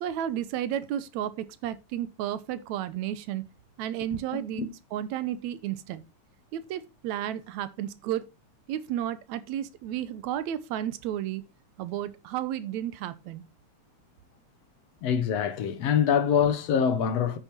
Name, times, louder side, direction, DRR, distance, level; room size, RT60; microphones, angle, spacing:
voice 1, 0.0-3.5 3.8-6.0 6.5-8.3 8.7-11.4 11.8-13.4, right 11 dB, 80° right, 2.1 m, -32 dB
voice 2, 15.0-17.4, left 7 dB, 65° left, 2.0 m, -24 dB
9.5 x 9.1 x 2.9 m
omnidirectional pair, 3.3 m